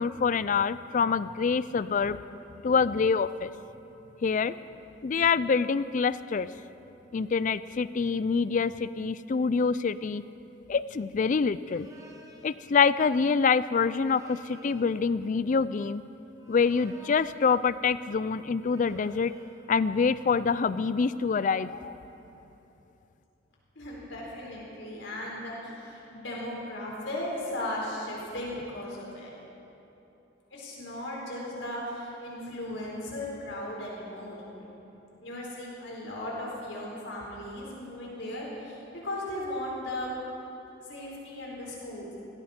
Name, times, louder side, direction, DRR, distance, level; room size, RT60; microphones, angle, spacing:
voice 1, 0.0-3.5 4.2-4.5 5.0-6.5 7.1-10.2 10.7-11.9 12.4-16.0 16.5-19.3 19.7-21.9, left 5 dB, 40° left, 16 dB, 0.3 m, -26 dB
sound 1, 11.6-12.6 14.0-15.0 16.4-17.6 18.6-19.6, right 1 dB, 15° right, 1.4 m, -53 dB
voice 2, 23.7-29.3 30.5-34.4 35.2-40.1 40.8-42.1, left 1 dB, 70° left, -4 dB, 4.4 m, -37 dB
18.0 x 17.0 x 4.4 m, 3.0 s
head